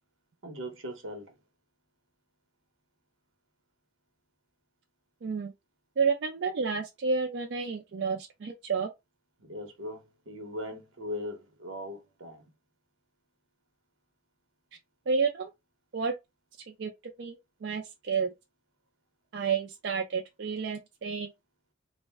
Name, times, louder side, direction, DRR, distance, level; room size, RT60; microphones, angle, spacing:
voice 1, 0.4-1.4 9.4-12.4, left 1 dB, 90° right, 0.9 m, -39 dB
voice 2, 5.2-5.5 6.0-8.9 15.1-15.5 15.9-16.1 16.7-16.9 17.2-18.3 19.3-21.3, right 5 dB, 60° right, 0.4 m, -30 dB
2.5 x 2.1 x 3.3 m
head